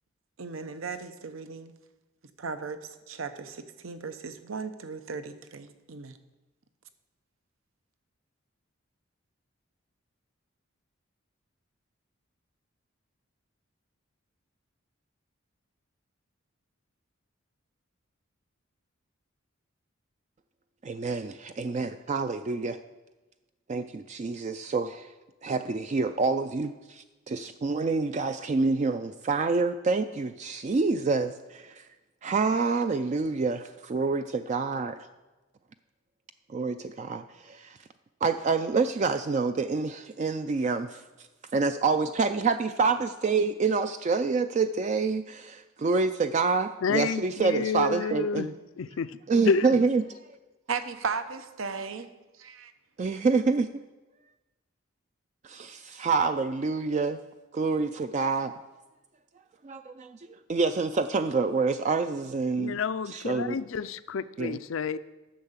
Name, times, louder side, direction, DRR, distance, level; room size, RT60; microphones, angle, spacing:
voice 1, 0.4-1.7 2.4-2.8 3.1-6.2 50.7-52.1 52.4-52.7, right 5 dB, 75° right, 10 dB, 0.7 m, -36 dB
voice 2, 20.8-22.8 23.7-25.1 25.4-31.8 32.2-35.0 36.5-37.8 38.2-41.0 41.5-48.5 49.3-50.0 53.0-53.8 55.4-57.2 57.5-58.5 59.6-60.2 60.5-62.8 63.1-63.6 64.4-64.6, right 4 dB, 35° right, 9 dB, 0.3 m, -27 dB
voice 3, 46.8-48.5 48.8-49.2 49.4-49.7 62.6-65.0, left 5 dB, 70° left, 15 dB, 0.4 m, -29 dB
10.0 x 6.6 x 7.2 m, 1.1 s
head